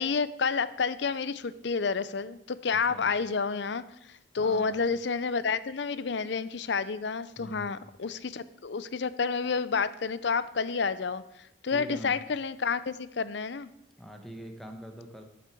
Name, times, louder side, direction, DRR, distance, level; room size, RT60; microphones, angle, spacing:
voice 1, 0.0-13.7, left 5 dB, 60° left, 15 dB, 0.5 m, -30 dB
voice 2, 4.4-4.8 7.4-7.8 11.7-12.2 14.0-15.2, equal, ahead, 4 dB, 1.1 m, -43 dB
13.0 x 8.1 x 4.6 m, 0.85 s
head